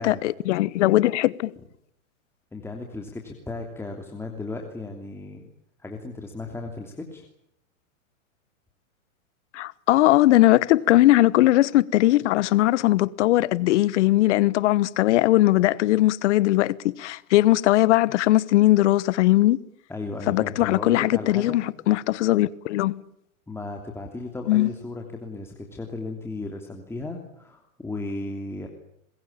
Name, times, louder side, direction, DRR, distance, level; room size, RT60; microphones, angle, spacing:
voice 1, 0.0-1.5 9.5-19.6 20.3-23.0 24.5-24.7, left 16 dB, 55° left, 1.2 m, -20 dB
voice 2, 2.5-5.4 5.8-7.3 19.9-21.6 23.5-28.7, left 2 dB, 5° left, 3.0 m, -35 dB
26.0 x 21.5 x 8.7 m
hypercardioid pair, 135°, 42 cm